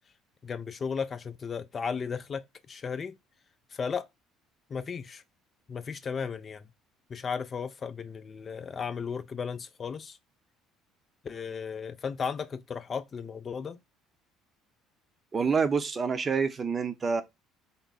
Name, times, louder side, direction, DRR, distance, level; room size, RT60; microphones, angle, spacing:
voice 1, 0.4-2.4 2.7-3.1 3.7-4.1 4.7-5.2 5.7-6.7 7.1-10.2 11.2-13.8, left 6 dB, 40° left, 0.4 m, -35 dB
voice 2, 15.3-17.2, right 5 dB, 35° right, 0.7 m, -27 dB
3.7 x 2.1 x 3.9 m
supercardioid pair, 70°, 0 cm